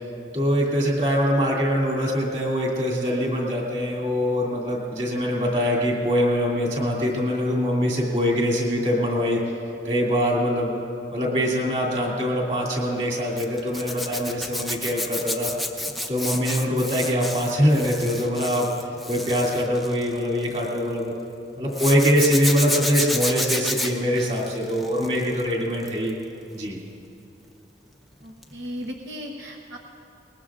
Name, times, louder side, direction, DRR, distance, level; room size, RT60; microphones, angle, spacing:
voice 1, 0.3-9.4 9.8-10.8 11.1-15.5 16.1-18.7 19.1-21.1 21.6-26.2 26.5-26.8, equal, 35° right, -3 dB, 2.6 m, -23 dB
Zipper (clothing), 13.4-20.8 21.7-25.4 25.7-26.1 28.4-28.6 28.8-28.9, left 1 dB, ahead, 0.6 m, -30 dB
voice 2, 28.2-29.9, equal, 70° right, 0 dB, 1.0 m, -36 dB
21.5 x 20.0 x 2.5 m, 2.7 s
head